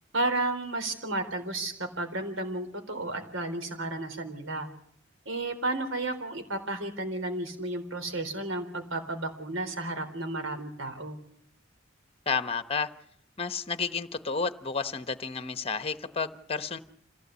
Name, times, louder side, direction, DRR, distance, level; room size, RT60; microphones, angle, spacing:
voice 1, 0.1-4.7 5.3-11.2, right 2 dB, 85° right, 7 dB, 3.9 m, -32 dB
voice 2, 12.3-12.9 13.4-16.8, left 5 dB, 30° left, 11 dB, 1.0 m, -31 dB
26.0 x 16.5 x 8.3 m, 0.67 s
head